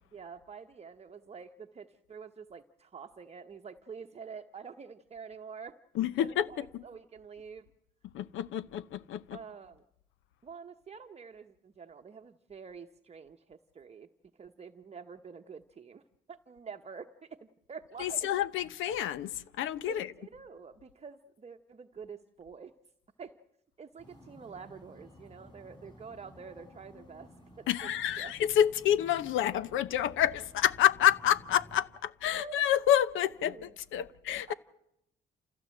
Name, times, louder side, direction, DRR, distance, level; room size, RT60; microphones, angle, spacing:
voice 1, 0.1-5.8 6.2-7.7 9.3-9.8 10.4-16.0 16.3-18.3 19.9-22.7 23.2-23.4 23.8-27.3 27.6-27.9 28.2-28.3 32.3-32.5 33.4-34.1 34.5-34.6, right 6 dB, 30° right, 0.9 m, -47 dB
voice 2, 5.9-6.8 8.1-9.4 18.0-20.1 27.7-34.5, left 11 dB, 85° left, 0.8 m, -28 dB
sound 1, 24.0-31.8, equal, 25° left, 7.0 m, -54 dB
28.0 x 15.5 x 7.7 m
cardioid pair, 90°, 20 cm